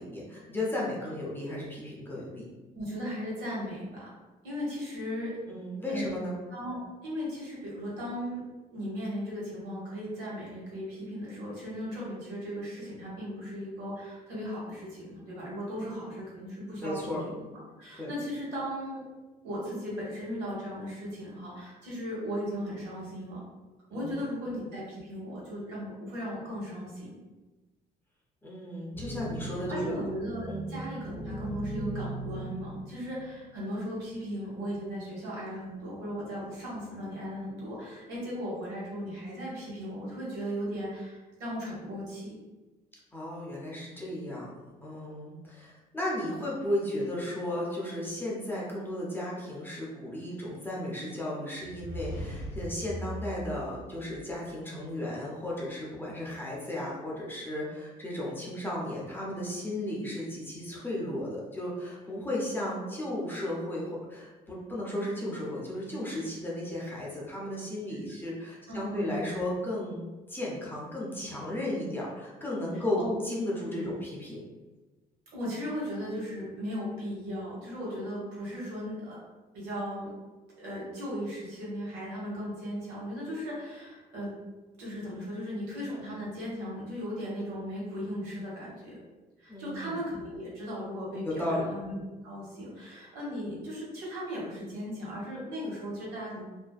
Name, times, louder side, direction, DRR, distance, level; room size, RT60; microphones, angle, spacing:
voice 1, 0.0-2.5 5.5-6.4 16.8-17.2 18.0-18.1 23.9-24.1 28.4-29.9 30.5-30.6 43.1-44.5 44.8-70.0 70.3-74.4 89.5-89.9 91.2-91.6, left 1 dB, 10° left, -5 dB, 0.6 m, -34 dB
voice 2, 2.7-4.1 4.4-5.3 5.9-6.1 6.5-6.8 7.0-8.4 8.7-17.0 17.8-19.0 19.4-23.4 23.9-27.1 29.7-42.3 67.9-68.0 68.7-69.4 73.0-73.2 73.7-73.9 75.3-79.2 79.5-80.1 80.6-84.3 84.8-88.9 89.4-92.0 92.2-96.4, equal, 90° right, -6 dB, 1.1 m, -37 dB
sound 1, 28.9-33.7 34.4-34.5 35.7-36.3 36.9-37.4, right 1 dB, 60° right, 1.2 m, -39 dB
sound 2, 51.6-54.6, equal, 40° left, 0.8 m, -40 dB
2.5 x 2.1 x 2.3 m, 1.2 s
cardioid pair, 110°, 17 cm